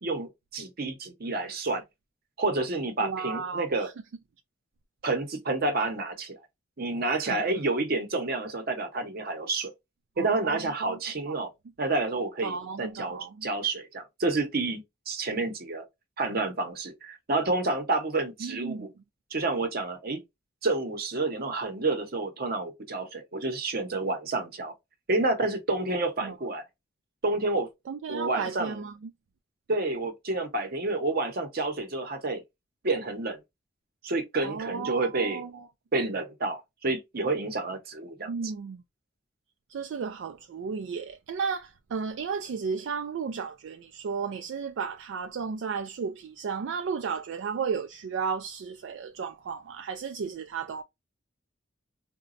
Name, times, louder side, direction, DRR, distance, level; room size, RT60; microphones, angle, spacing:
voice 1, 0.0-1.8 2.4-3.9 5.0-6.4 6.8-9.7 10.2-11.5 11.8-15.8 16.2-18.9 19.3-20.2 20.6-24.7 25.1-26.6 27.2-27.7 28.1-28.8 29.7-32.4 32.8-33.4 34.0-35.5 35.9-38.3, right 2 dB, 50° right, 0.8 m, -29 dB
voice 2, 3.0-3.9 7.3-7.4 10.2-11.0 11.3-11.4 12.4-13.5 18.4-18.9 26.2-26.3 27.9-28.9 34.4-35.7 38.3-38.8 39.7-50.8, right 5 dB, 70° right, 0.3 m, -34 dB
3.9 x 2.2 x 2.4 m
head